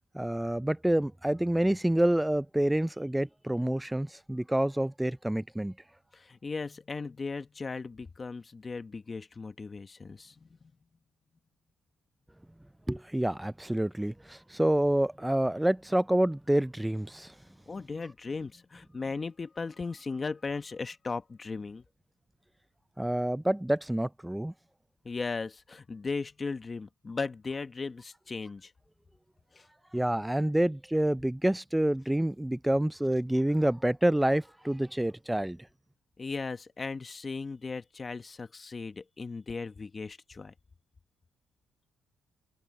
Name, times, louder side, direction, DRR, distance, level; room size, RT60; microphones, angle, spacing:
voice 1, 0.1-5.7 12.9-17.3 23.0-24.5 29.9-35.6, right 1 dB, 5° right, 0.4 m, -28 dB
voice 2, 6.1-10.5 17.7-21.8 25.0-28.7 29.5-29.7 36.2-40.5, left 4 dB, 30° left, 1.2 m, -37 dB
cardioid pair, 90°, 0 cm